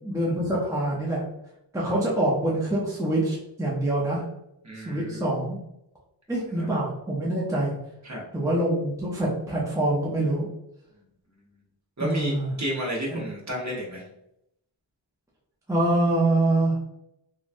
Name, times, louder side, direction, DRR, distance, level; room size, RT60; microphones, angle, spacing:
voice 1, 0.0-1.2 1.7-4.2 4.9-5.6 6.3-7.7 8.3-10.5 12.0-12.5 13.1-13.2 15.7-16.8, right 1 dB, 5° right, -5 dB, 0.6 m, -25 dB
voice 2, 4.6-5.2 6.6-6.7 8.0-8.2 12.0-14.0, equal, 35° right, -4 dB, 1.0 m, -31 dB
3.0 x 2.2 x 2.5 m, 0.83 s
wide cardioid pair, 70°, 47 cm